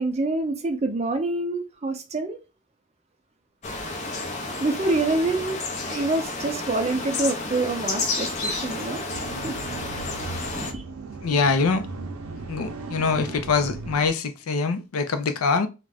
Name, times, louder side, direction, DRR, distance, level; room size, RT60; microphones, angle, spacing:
voice 1, 0.0-2.4 4.6-5.6 5.9-9.0 9.4-9.6 10.5-10.8, right 2 dB, 30° right, 0.4 m, -26 dB
sound 1, 3.6-10.7, left 3 dB, 30° left, 0.5 m, -31 dB
sound 2, 9.1-14.1, right 3 dB, 90° right, 0.5 m, -36 dB
voice 2, 11.2-11.9 12.5-15.7, left 4 dB, 85° left, 0.5 m, -24 dB
2.4 x 2.1 x 3.3 m
head